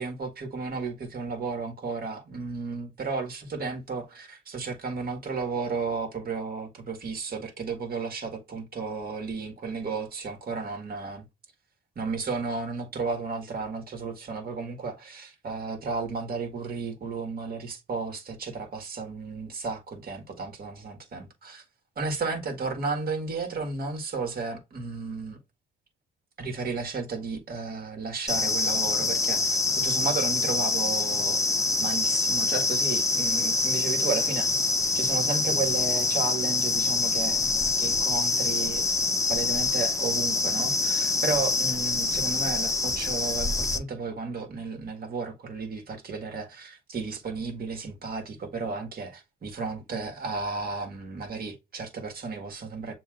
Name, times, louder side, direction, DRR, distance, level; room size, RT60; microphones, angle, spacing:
voice 1, 0.0-11.2 11.9-21.6 21.9-25.4 26.4-31.4 31.8-34.5 34.9-39.0 39.3-52.9, right 4 dB, 50° right, 1.6 m, -33 dB
sound 1, 28.3-43.8, left 3 dB, 15° left, 0.7 m, -25 dB
7.3 x 2.7 x 2.4 m
cardioid pair, 90°, 20 cm